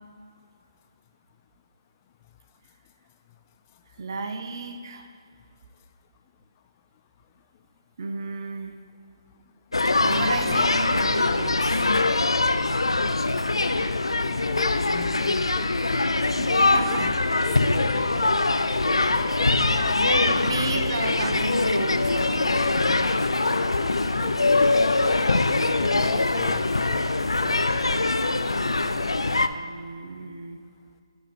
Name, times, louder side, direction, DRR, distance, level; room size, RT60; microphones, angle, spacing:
voice 1, 4.0-5.1 8.0-8.8 9.8-11.9 16.4-17.1 19.8-22.7 29.5-30.6, right 4 dB, 55° right, 6 dB, 0.9 m, -33 dB
sound 1, 9.7-29.5, left 2 dB, 90° left, 0.4 m, -23 dB
voice 2, 14.3-15.7 16.5-20.2 20.5-20.8 24.2-27.0 27.4-28.1, left 9 dB, 30° left, 10 dB, 0.3 m, -39 dB
11.0 x 4.0 x 5.2 m, 2.2 s
figure-of-eight pair, 145°, 3 cm